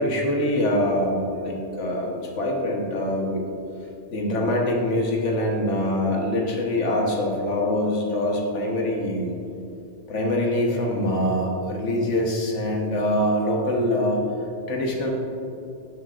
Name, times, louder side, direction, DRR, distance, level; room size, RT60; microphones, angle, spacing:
voice 1, 0.0-3.5 4.1-9.3 10.1-14.2 14.7-15.1, left 1 dB, 65° left, -1 dB, 1.4 m, -24 dB
11.5 x 6.4 x 2.4 m, 2.7 s
omnidirectional pair, 1.3 m